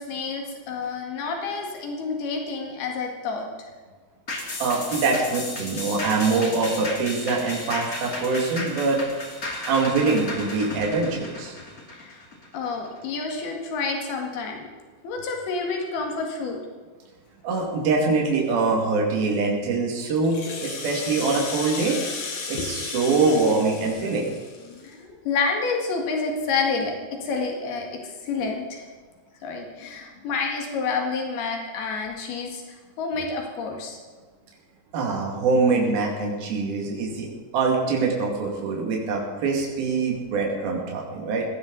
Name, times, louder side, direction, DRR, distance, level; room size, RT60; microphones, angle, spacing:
voice 1, 0.0-3.5 11.9-12.2 12.5-14.7 15.0-16.6 20.3-20.6 24.7-27.9 28.2-28.8 29.4-34.0 37.9-38.0, left 4 dB, 90° left, 1 dB, 4.0 m, -29 dB
sound 1, 4.3-13.0 13.4-13.5, left 2 dB, 30° left, 2.3 m, -34 dB
voice 2, 4.6-9.0 9.7-11.5 17.4-22.0 22.5-24.3 34.9-37.3 37.5-41.5, right 4 dB, 75° right, -1 dB, 4.2 m, -24 dB
Rattle (instrument), 20.2-24.9, left 4 dB, 50° left, 2.6 m, -34 dB
19.0 x 17.0 x 4.0 m, 1.4 s
omnidirectional pair, 4.3 m